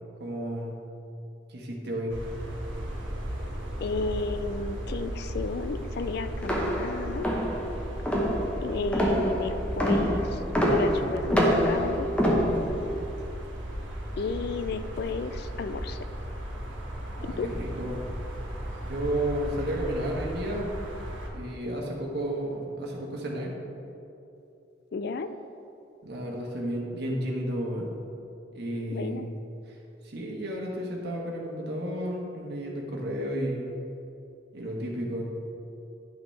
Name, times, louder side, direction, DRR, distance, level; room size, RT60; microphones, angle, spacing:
voice 1, 0.2-0.7 1.5-2.1 17.2-18.0 18.8-20.7 21.3-23.5 26.0-27.9 28.5-29.3 29.7-29.8 30.0-33.7 34.5-35.2, right 1 dB, 60° right, -1 dB, 1.3 m, -32 dB
sound 1, 2.1-21.3, equal, 80° right, 1.5 m, -36 dB
voice 2, 3.8-7.3 8.6-10.4 10.7-12.1 14.2-16.1 17.2-17.5 24.9-25.3 28.9-29.3, left 4 dB, 55° left, 10 dB, 0.3 m, -33 dB
sound 2, 6.4-12.9, equal, 5° left, 0.9 m, -26 dB
10.5 x 5.9 x 3.3 m, 2.8 s
head